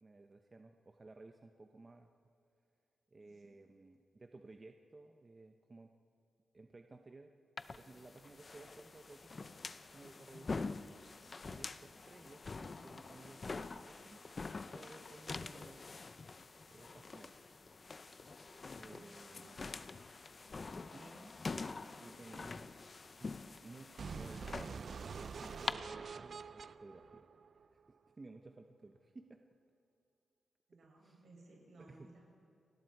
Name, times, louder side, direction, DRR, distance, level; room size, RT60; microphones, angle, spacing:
voice 1, 0.0-2.1 3.1-5.9 6.5-7.3 7.7-9.6 9.9-10.8 11.4-14.2 14.7-15.9 16.7-17.3 18.5-19.5 20.9-21.3 22.0-22.7 23.1-29.4 31.0-31.2 31.8-32.1, right 3 dB, 25° right, 5 dB, 0.8 m, -56 dB
sound 1, 7.6-25.7, left 4 dB, 35° left, 0.6 m, -46 dB
voice 2, 18.8-19.7 30.7-32.3, right 2 dB, 65° right, -2 dB, 7.2 m, -61 dB
sound 2, 24.0-28.0, right 5 dB, 50° right, 0.4 m, -46 dB
29.0 x 20.0 x 4.7 m, 2.7 s
wide cardioid pair, 140°, 0 cm